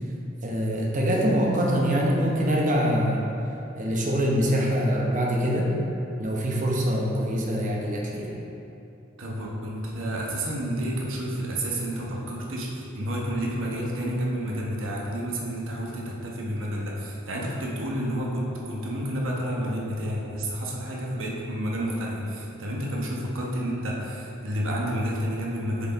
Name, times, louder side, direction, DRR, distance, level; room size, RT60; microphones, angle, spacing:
voice 1, 0.4-3.2 3.8-5.7 6.2-8.3, equal, 40° right, -1 dB, 0.9 m, -24 dB
voice 2, 9.2-25.9, equal, 70° right, -3 dB, 1.1 m, -30 dB
6.9 x 4.7 x 4.1 m, 2.7 s
head